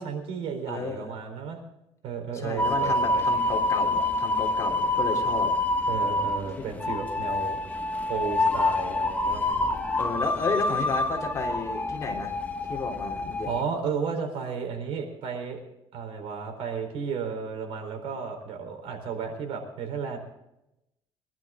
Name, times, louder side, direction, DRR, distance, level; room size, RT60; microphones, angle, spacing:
voice 1, 0.0-1.6 2.0-3.2 5.9-7.6 8.1-9.7 13.4-15.6 15.9-20.2, right 6 dB, 70° right, 5 dB, 4.1 m, -33 dB
voice 2, 0.7-1.1 2.3-5.5 10.0-12.4 12.7-13.5, left 4 dB, 30° left, 1 dB, 3.4 m, -32 dB
sound 1, 2.6-13.6, left 2 dB, 15° left, 1.3 m, -27 dB
23.5 x 12.0 x 3.7 m, 0.87 s
cardioid pair, 130°, 10 cm